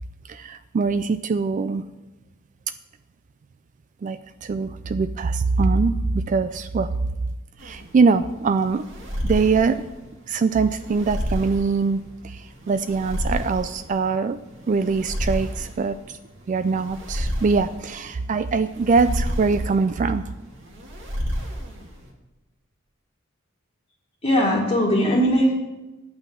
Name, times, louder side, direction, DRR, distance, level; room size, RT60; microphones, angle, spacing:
voice 1, 0.3-1.8 4.0-6.9 7.6-8.8 9.2-9.8 10.3-14.4 14.7-16.0 16.5-20.2, right 4 dB, 40° right, 12 dB, 0.3 m, -22 dB
sound 1, 7.6-22.1, equal, 65° right, 2.1 m, -31 dB
voice 2, 24.2-25.5, equal, 25° left, -4 dB, 1.6 m, -19 dB
9.6 x 6.0 x 7.6 m, 1.1 s
head